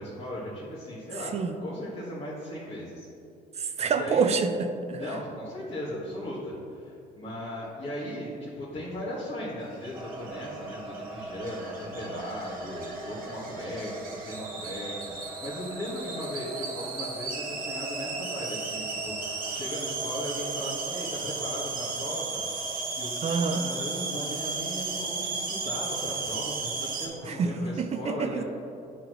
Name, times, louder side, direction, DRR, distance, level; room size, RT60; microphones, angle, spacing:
voice 1, 0.0-1.3 1.6-3.1 3.9-4.4 4.9-28.4, left 1 dB, 40° left, -9 dB, 1.6 m, -37 dB
voice 2, 3.6-5.0 23.2-23.6 27.3-28.4, right 5 dB, 40° right, 8 dB, 0.4 m, -27 dB
sound 1, 9.7-27.1, right 4 dB, 55° right, 1.2 m, -35 dB
sound 2, 9.9-27.2, right 2 dB, 20° right, 1.2 m, -42 dB
10.0 x 4.6 x 3.0 m, 2.6 s
cardioid pair, 110°, 17 cm